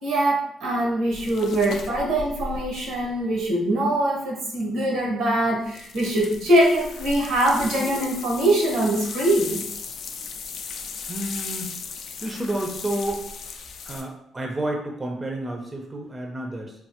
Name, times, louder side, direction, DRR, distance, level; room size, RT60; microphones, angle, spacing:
voice 1, 0.0-9.7, right 1 dB, 90° right, -2 dB, 1.1 m, -23 dB
sound 1, 1.1-3.4 5.7-14.0, left 5 dB, 70° left, 0.3 m, -36 dB
voice 2, 11.1-11.7 12.2-13.2 13.8-16.7, right 1 dB, 20° right, 1 dB, 0.5 m, -30 dB
3.1 x 2.0 x 2.8 m, 0.70 s
cardioid pair, 90°, 0 cm